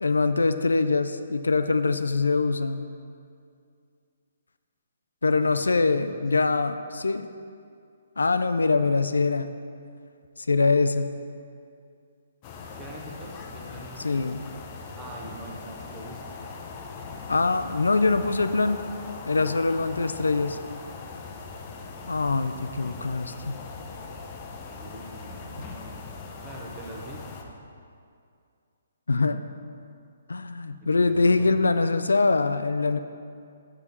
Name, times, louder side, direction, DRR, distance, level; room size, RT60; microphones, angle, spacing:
voice 1, 0.0-2.8 5.2-7.3 8.2-9.5 10.4-11.1 14.0-14.4 17.3-18.8 19.3-20.6 22.1-23.6 29.1-29.4 30.3-33.0, left 3 dB, 80° left, 10 dB, 0.3 m, -23 dB
voice 2, 5.4-6.3 12.8-14.2 15.0-16.3 22.1-23.0 24.7-26.0 26.4-27.4 30.8-31.6, right 2 dB, 20° right, -1 dB, 1.0 m, -44 dB
sound 1, 12.4-27.4, left 4 dB, 30° left, 0.6 m, -40 dB
7.5 x 4.9 x 4.1 m, 2.4 s
figure-of-eight pair, 135°, 0 cm